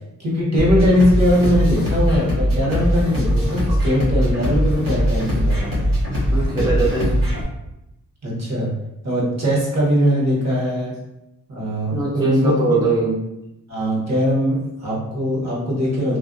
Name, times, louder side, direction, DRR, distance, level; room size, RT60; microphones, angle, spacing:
voice 1, 0.2-5.9 8.2-8.7 9.0-11.0 11.5-12.8 13.7-16.2, equal, 50° right, -5 dB, 1.0 m, -20 dB
sound 1, 0.6-7.4, equal, 70° right, 1.0 m, -20 dB
voice 2, 6.2-7.2 11.9-13.2, right 2 dB, 10° right, -6 dB, 0.5 m, -21 dB
2.3 x 2.1 x 2.5 m, 0.90 s
cardioid pair, 90°, 34 cm